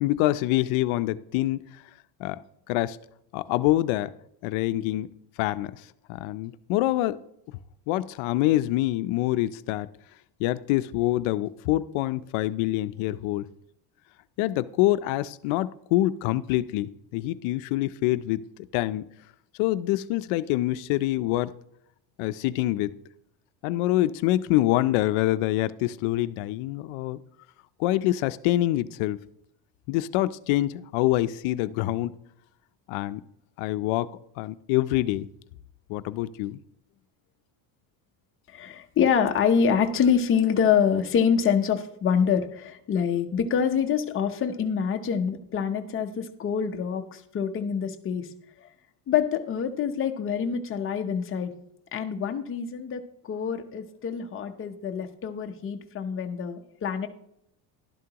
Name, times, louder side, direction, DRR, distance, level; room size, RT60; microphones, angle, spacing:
voice 1, 0.0-1.7 2.2-2.4 2.7-3.0 3.3-4.1 4.4-5.1 5.4-5.7 6.1-7.2 7.9-9.9 10.4-13.5 14.4-18.5 18.7-19.0 19.6-21.5 22.2-22.9 23.6-27.2 27.8-29.2 29.9-32.2 32.9-33.2 33.6-34.1 34.4-35.3 35.9-36.6, left 16 dB, 70° left, 14 dB, 0.6 m, -25 dB
voice 2, 38.5-48.3 48.6-48.7 49.1-51.5 51.9-57.1, left 7 dB, 25° left, 5 dB, 0.7 m, -26 dB
11.5 x 11.0 x 2.9 m, 0.76 s
cardioid pair, 160°, 50 cm